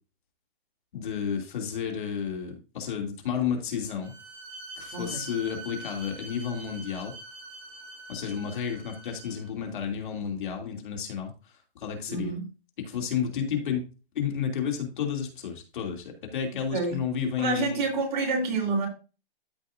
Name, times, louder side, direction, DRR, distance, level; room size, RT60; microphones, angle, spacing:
voice 1, 0.9-4.1 4.8-7.1 8.1-11.3 11.7-12.3 12.8-13.9 14.1-17.8, left 7 dB, 55° left, 2.8 m, -31 dB
Bowed string instrument, 4.0-9.5, right 2 dB, 20° right, 2.3 m, -44 dB
voice 2, 4.9-5.2 12.1-12.4 16.7-17.0 17.4-18.9, right 3 dB, 50° right, 3.6 m, -28 dB
13.5 x 5.5 x 2.6 m
hypercardioid pair, 165°, 30 cm